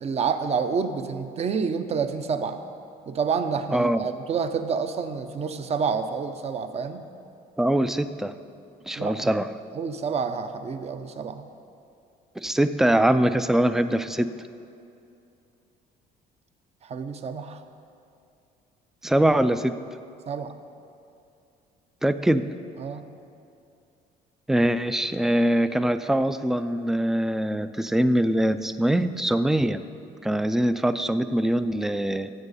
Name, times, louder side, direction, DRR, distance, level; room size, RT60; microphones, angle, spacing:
voice 1, 0.0-2.6 3.1-7.1 9.0-9.4 9.7-11.5 16.8-17.6 20.3-20.5 22.8-23.1, right 6 dB, 40° right, 9 dB, 0.7 m, -28 dB
voice 2, 7.6-8.3 8.9-9.5 12.4-14.3 19.0-19.8 22.0-22.5 24.5-29.8 30.2-32.3, right 1 dB, ahead, 12 dB, 0.3 m, -23 dB
14.0 x 8.1 x 4.1 m, 2.6 s
cardioid pair, 110°, 17 cm